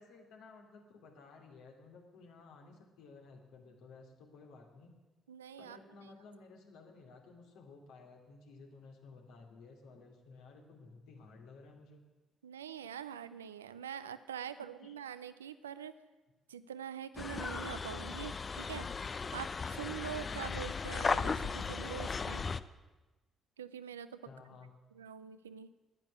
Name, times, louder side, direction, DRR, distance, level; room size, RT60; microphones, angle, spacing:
voice 1, 0.0-4.9 5.6-12.0 14.4-14.9 24.2-24.7, left 4 dB, 70° left, 2 dB, 2.7 m, -55 dB
voice 2, 5.3-6.1 12.4-15.9 16.5-18.9 19.3-22.4 23.6-24.2 24.9-25.7, right 9 dB, 90° right, 14 dB, 0.5 m, -44 dB
sound 1, 17.2-22.6, left 5 dB, 40° left, 0.6 m, -36 dB
11.0 x 10.5 x 9.6 m, 1.2 s
hypercardioid pair, 45°, 0 cm